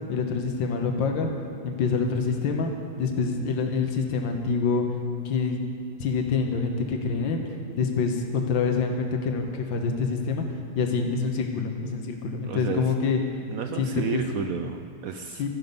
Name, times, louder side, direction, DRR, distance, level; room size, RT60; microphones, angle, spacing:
voice 1, 0.1-1.3 1.6-2.7 3.0-4.8 5.2-5.6 6.0-7.5 7.8-10.4 10.7-13.2 13.8-14.2 15.4-15.5, left 5 dB, 80° left, 3 dB, 1.8 m, -26 dB
voice 2, 12.5-12.9 13.5-15.5, right 6 dB, 70° right, 6 dB, 0.8 m, -32 dB
12.5 x 12.5 x 5.3 m, 2.4 s
omnidirectional pair, 2.1 m